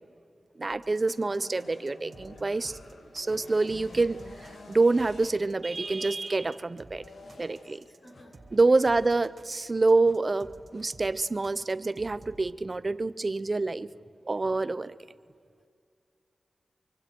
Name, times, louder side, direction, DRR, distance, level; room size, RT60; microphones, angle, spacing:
voice 1, 0.6-2.8 3.1-7.1 7.4-7.8 8.5-13.9 14.3-14.9, right 3 dB, 35° right, 15 dB, 0.7 m, -26 dB
sound 1, 0.7-12.5, right 2 dB, 55° right, 1.8 m, -53 dB
sound 2, 1.0-9.0, left 2 dB, 90° left, 2.2 m, -51 dB
sound 3, 2.6-2.8 3.2-3.4 3.9-4.1 4.4-4.6 4.9-5.1 5.4-5.5 5.8-6.0 6.4-6.5 7.2-7.4 8.1-8.3 9.0-9.1 10.0-10.2 10.7-10.9 11.4-11.6, left 2 dB, 50° left, 1.9 m, -58 dB
voice 2, 7.2-8.9, equal, 35° left, 0 dB, 5.6 m, -57 dB
25.5 x 24.5 x 4.6 m, 2.2 s
wide cardioid pair, 85°, 0 cm